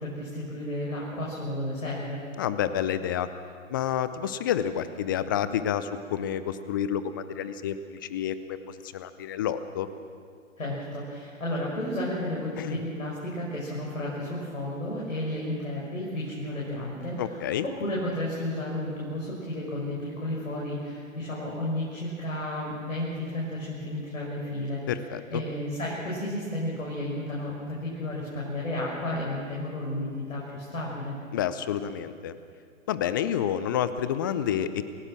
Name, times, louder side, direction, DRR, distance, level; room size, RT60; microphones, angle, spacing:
voice 1, 0.0-2.2 10.6-24.9 25.3-31.1, left 1 dB, 75° left, -5 dB, 6.0 m, -32 dB
voice 2, 2.4-3.3 3.7-9.9 12.6-12.8 17.2-17.7 24.9-25.4 31.3-32.4 32.9-34.8, left 9 dB, 15° left, 13 dB, 0.5 m, -29 dB
28.0 x 17.0 x 6.2 m, 2.3 s
figure-of-eight pair, 125°, 40 cm